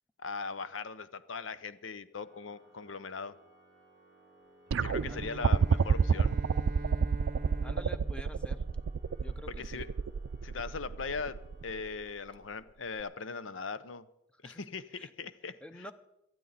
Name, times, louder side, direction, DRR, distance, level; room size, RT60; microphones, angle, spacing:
voice 1, 0.2-3.4 4.8-6.4 9.6-9.9 10.4-14.1 14.4-15.9, left 4 dB, 90° left, 14 dB, 0.7 m, -40 dB
Organ, 2.1-13.1, right 1 dB, 65° left, 5.8 m, -62 dB
Bowed string instrument, 4.7-9.3, right 2 dB, 45° right, 0.7 m, -45 dB
sound 1, 4.7-11.9 13.0-13.1, right 6 dB, 80° right, 0.4 m, -28 dB
voice 2, 7.6-8.6 9.2-9.8 14.4-14.6 14.9-15.1 15.6-15.9, left 1 dB, 5° left, 10 dB, 0.7 m, -48 dB
18.0 x 12.5 x 4.1 m, 0.84 s
head